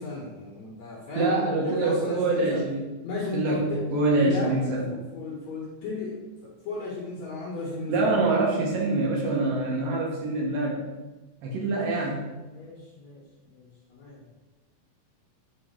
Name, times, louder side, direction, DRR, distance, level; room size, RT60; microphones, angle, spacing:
voice 1, 0.0-2.6 3.0-3.8 4.2-8.4 11.7-12.0 12.5-14.2, left 2 dB, 60° left, -4 dB, 2.1 m, -35 dB
voice 2, 1.2-2.8 3.3-4.8 7.9-10.8 11.4-12.2, right 2 dB, 70° right, -2 dB, 2.7 m, -25 dB
8.3 x 3.7 x 4.3 m, 1.1 s
omnidirectional pair, 4.2 m